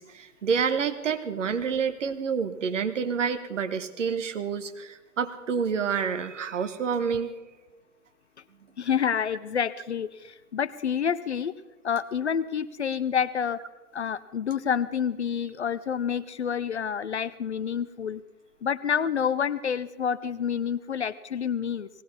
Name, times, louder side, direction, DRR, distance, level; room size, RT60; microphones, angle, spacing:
voice 1, 0.0-7.3, right 6 dB, 50° right, 9 dB, 1.3 m, -28 dB
voice 2, 8.8-11.5 11.8-13.6 13.9-18.2 18.6-21.9, left 7 dB, 50° left, 16 dB, 0.5 m, -28 dB
19.0 x 17.0 x 4.2 m, 1.2 s
figure-of-eight pair, 140°, 46 cm